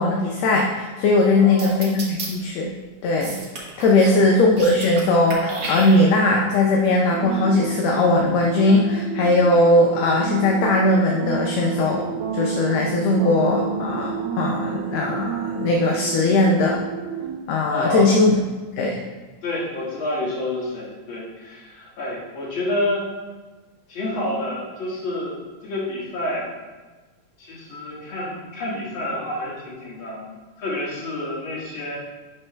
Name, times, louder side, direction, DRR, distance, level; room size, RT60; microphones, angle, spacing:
voice 1, 0.0-2.7 3.0-3.4 3.8-12.1 12.3-16.8 17.5-18.4 18.8-19.0, left 2 dB, 75° left, 0 dB, 1.8 m, -19 dB
voice 2, 1.3-1.9 4.0-4.3 17.7-18.2 19.4-23.1 23.9-25.4 25.6-26.5 27.4-30.3 30.6-32.0, left 1 dB, 45° left, -5 dB, 2.3 m, -28 dB
sound 1, 1.6-2.3 3.2-4.2 4.5-5.0 5.3-6.3, right 3 dB, 60° right, 1.0 m, -32 dB
sound 2, 7.1-17.4, right 8 dB, 75° right, 1.9 m, -30 dB
10.5 x 4.1 x 3.2 m, 1.3 s
omnidirectional pair, 3.3 m